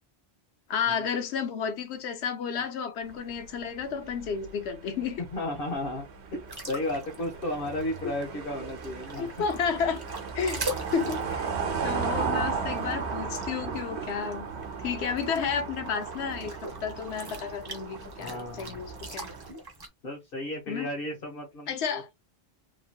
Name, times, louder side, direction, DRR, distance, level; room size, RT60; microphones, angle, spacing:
voice 1, 0.7-5.2 9.2-10.0 10.3-11.5 11.8-14.5 14.8-19.3 20.7-20.9 21.7-22.1, left 6 dB, 90° left, 0.9 m, -32 dB
sound 1, 3.1-19.5, right 5 dB, 85° right, 0.9 m, -36 dB
voice 2, 5.3-6.4 6.7-9.3 18.2-18.8 20.0-22.2, left 1 dB, 60° left, 1.1 m, -34 dB
sound 2, 6.5-19.9, right 1 dB, 25° right, 0.7 m, -43 dB
3.0 x 2.7 x 2.2 m
omnidirectional pair, 1.1 m